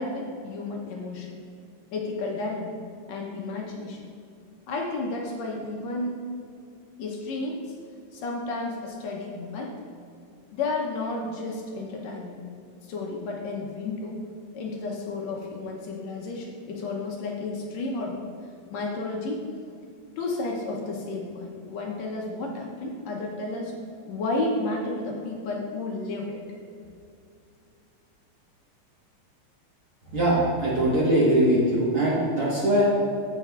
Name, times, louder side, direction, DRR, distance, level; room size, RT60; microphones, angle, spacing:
voice 1, 0.0-1.4 1.9-2.8 3.1-4.1 4.7-6.1 7.0-7.6 8.1-9.8 10.5-12.4 12.8-14.2 14.5-18.2 18.7-19.4 20.2-23.7 24.0-26.4, left 2 dB, 70° left, -1 dB, 1.8 m, -32 dB
voice 2, 30.1-32.8, right 1 dB, 55° right, -7 dB, 1.8 m, -21 dB
15.5 x 5.7 x 2.4 m, 2.4 s
omnidirectional pair, 3.5 m